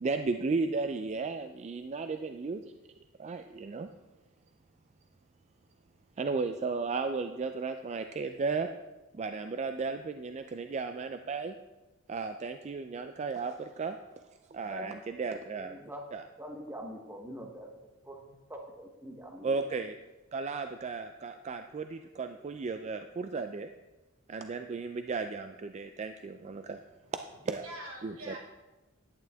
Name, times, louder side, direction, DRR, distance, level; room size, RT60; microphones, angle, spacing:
voice 1, 0.0-2.7 3.2-3.9 6.2-8.7 9.1-11.5 12.1-14.0 14.5-15.8 16.1-16.2 19.4-20.0 20.3-23.7 24.3-26.8 27.1-27.7 28.0-28.3, right 4 dB, 30° right, 7 dB, 0.3 m, -34 dB
voice 2, 14.7-15.0 15.6-16.0 16.4-17.7 18.0-19.6, equal, 10° right, 1 dB, 0.9 m, -44 dB
voice 3, 27.0-28.4, right 1 dB, 75° right, -4 dB, 3.1 m, -46 dB
11.0 x 8.9 x 3.4 m, 1.1 s
head